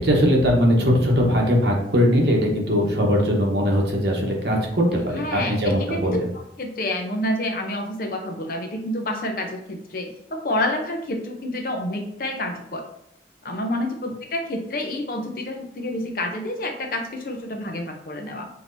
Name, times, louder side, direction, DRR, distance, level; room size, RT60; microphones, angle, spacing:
voice 1, 0.0-6.1, equal, 70° right, -1 dB, 1.1 m, -20 dB
voice 2, 4.9-6.2 6.6-12.8 13.4-18.5, left 1 dB, 50° left, 3 dB, 0.6 m, -28 dB
6.1 x 2.8 x 2.6 m, 0.76 s
head